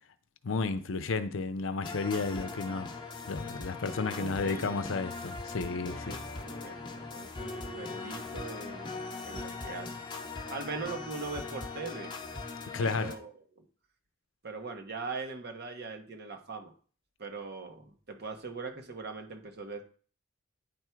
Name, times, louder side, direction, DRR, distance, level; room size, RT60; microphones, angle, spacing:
voice 1, 0.4-3.0 3.3-6.2 12.7-13.1, left 4 dB, 70° left, 0.6 m, -32 dB
sound 1, 1.8-13.1, left 3 dB, 25° left, 0.9 m, -40 dB
voice 2, 4.1-4.9 5.8-9.0 9.2-10.0 10.5-12.1 12.8-13.6 14.4-16.7 17.2-19.8, right 4 dB, 55° right, 1.2 m, -41 dB
9.6 x 3.5 x 4.5 m
head